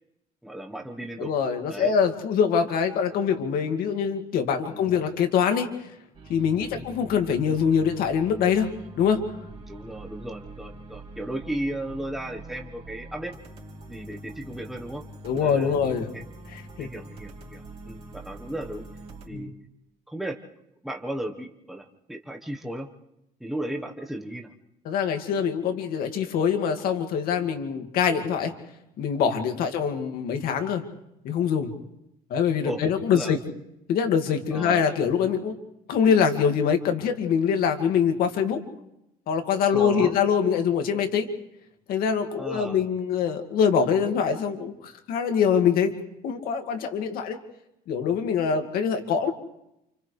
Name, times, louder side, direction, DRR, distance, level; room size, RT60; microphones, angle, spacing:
voice 1, 0.4-1.3 1.7-1.9 4.7-4.9 6.6-6.8 9.7-13.3 13.8-15.0 15.4-16.2 16.8-18.8 19.2-19.5 20.1-20.4 20.8-22.9 23.4-24.5 29.6-29.7 32.6-32.8 33.1-33.4 34.5-34.8 39.7-40.2 42.4-42.8, right 1 dB, ahead, 1 dB, 1.2 m, -35 dB
voice 2, 1.2-5.7 6.3-8.7 9.0-9.2 15.2-16.1 16.5-16.9 19.3-19.5 24.9-28.5 29.0-30.8 31.2-31.7 32.3-33.4 33.9-35.5 35.9-38.6 39.3-41.3 41.9-45.9 46.2-47.4 47.9-49.3, left 7 dB, 70° left, 5 dB, 2.2 m, -24 dB
sound 1, 6.1-19.3, right 1 dB, 40° right, 3.1 m, -44 dB
30.0 x 28.0 x 3.4 m, 0.86 s
cardioid pair, 170°, 16 cm